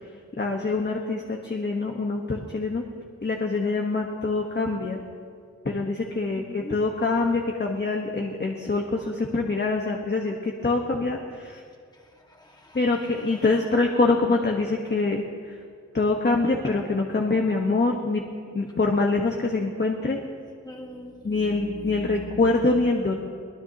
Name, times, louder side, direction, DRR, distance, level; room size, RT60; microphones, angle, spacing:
voice 1, 0.4-2.8 3.2-5.0 5.6-11.6 12.7-15.6 15.9-18.2 18.5-20.2 21.2-23.2, left 3 dB, 35° left, 1 dB, 1.4 m, -25 dB
voice 2, 6.3-6.8 12.3-12.8 20.6-22.3, left 1 dB, 15° left, -1 dB, 2.1 m, -41 dB
23.0 x 19.5 x 3.0 m, 2.1 s
wide cardioid pair, 90°, 29 cm